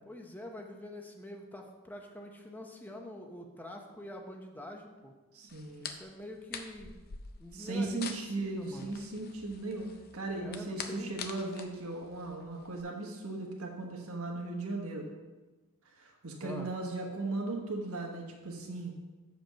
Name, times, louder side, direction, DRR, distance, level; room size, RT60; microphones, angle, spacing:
voice 1, 0.0-5.1 5.8-7.0 7.4-9.0 10.3-11.2 16.4-16.7, left 1 dB, 10° left, 2 dB, 0.8 m, -45 dB
voice 2, 5.3-5.9 7.5-9.9 10.1-15.1 15.9-18.9, right 2 dB, 70° right, 0 dB, 1.3 m, -37 dB
sound 1, 5.5-12.8, left 6 dB, 45° left, 0.6 m, -46 dB
7.7 x 5.2 x 5.7 m, 1.2 s
head